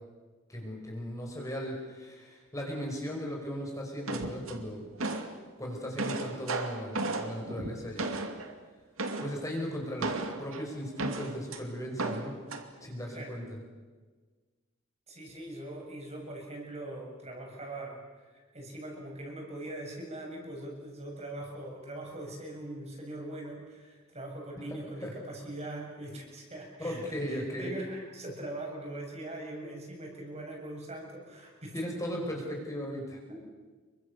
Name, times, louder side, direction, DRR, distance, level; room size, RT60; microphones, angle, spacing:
voice 1, 0.5-4.8 5.6-8.1 9.2-12.3 12.8-13.6 25.0-25.1 26.8-27.7 31.7-33.2, equal, 15° left, 0 dB, 5.2 m, -37 dB
sound 1, 4.1-5.4 5.7-8.5 9.0-9.4 10.0-11.6 12.0-12.7, right 2 dB, 70° right, 2.6 m, -34 dB
voice 2, 13.1-13.5 15.1-31.9 33.3-33.5, right 1 dB, 30° right, 0 dB, 7.2 m, -42 dB
28.5 x 24.0 x 6.8 m, 1.4 s
head